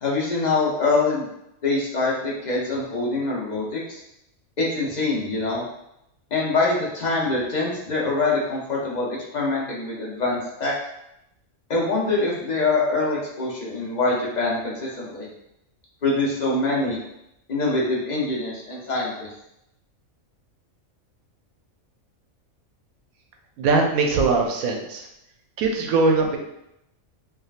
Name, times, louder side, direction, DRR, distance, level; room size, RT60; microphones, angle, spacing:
voice 1, 0.0-1.3 1.6-4.0 4.6-5.6 6.3-10.7 11.7-15.3 16.0-17.0 17.5-19.3, left 3 dB, 55° left, -4 dB, 0.5 m, -24 dB
voice 2, 23.6-25.1 25.6-26.4, right 3 dB, 90° right, 2 dB, 1.0 m, -21 dB
3.4 x 2.3 x 2.3 m, 0.82 s
omnidirectional pair, 1.5 m